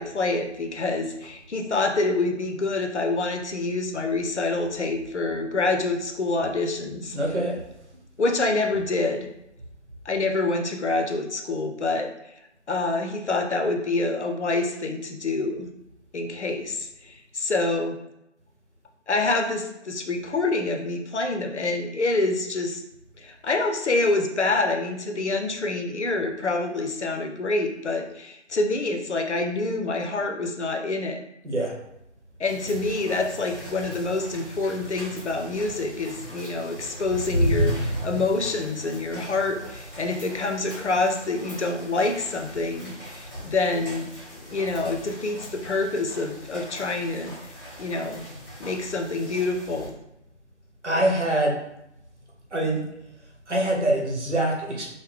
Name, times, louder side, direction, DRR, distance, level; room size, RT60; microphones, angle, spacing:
voice 1, 0.0-7.2 8.2-9.3 10.1-12.1 12.7-15.7 16.1-18.0 19.1-22.8 23.2-31.2 32.4-44.1 44.4-47.4 47.8-48.3 48.6-49.9, left 3 dB, 70° left, 4 dB, 0.6 m, -26 dB
voice 2, 7.1-7.6 31.4-31.8 50.8-51.6 52.5-52.8 53.5-54.9, right 1 dB, 70° right, 0 dB, 0.9 m, -24 dB
sound 1, 32.4-49.9, equal, 20° left, 1.0 m, -35 dB
3.5 x 2.1 x 3.2 m, 0.83 s
figure-of-eight pair, 160°, 36 cm